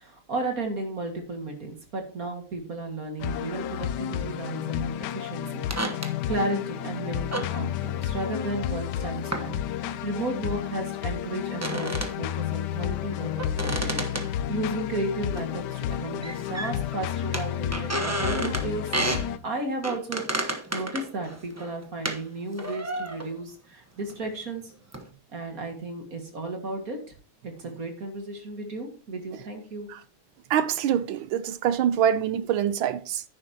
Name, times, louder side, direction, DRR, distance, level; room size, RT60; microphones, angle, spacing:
voice 1, 0.0-5.7 5.9-18.8 19.4-24.7 25.3-27.0 27.4-29.9, right 2 dB, 45° right, 2.2 m, -34 dB
sound 1, 3.2-19.4, left 11 dB, 75° left, 1.0 m, -31 dB
sound 2, 5.7-6.1 7.3-7.5 9.3-9.5 10.1-10.2 11.5-12.1 13.4-14.8 15.4-15.5 15.7-15.9 16.2-16.9 17.3-18.7 18.9-19.3 19.8-22.2 22.6-23.4 24.1-24.3 24.9-25.0, right 1 dB, 15° right, 0.6 m, -31 dB
voice 2, 30.5-33.2, right 9 dB, 80° right, 1.4 m, -25 dB
10.0 x 9.9 x 2.9 m
omnidirectional pair, 2.3 m